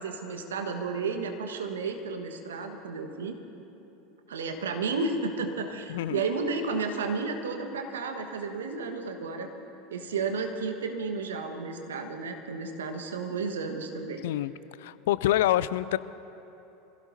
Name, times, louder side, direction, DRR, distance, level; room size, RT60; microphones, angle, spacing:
voice 1, 0.0-3.4 4.3-9.5 9.9-14.2, right 4 dB, 75° right, 5 dB, 1.4 m, -32 dB
voice 2, 5.9-6.2 14.2-14.5 14.8-16.0, left 14 dB, 65° left, 17 dB, 0.4 m, -26 dB
25.5 x 16.5 x 2.7 m, 3.0 s
figure-of-eight pair, 80°, 0 cm